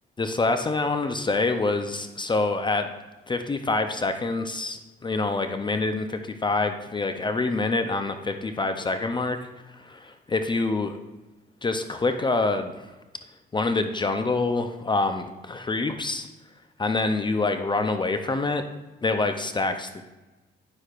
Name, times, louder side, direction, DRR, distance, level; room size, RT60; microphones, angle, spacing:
voice 1, 0.2-2.9 3.3-9.4 9.7-11.0 11.6-12.9 13.5-16.3 16.8-18.6 19.0-20.0, left 3 dB, 25° left, 7 dB, 0.5 m, -26 dB
9.5 x 6.5 x 2.4 m, 1.1 s
cardioid pair, 90°, 20 cm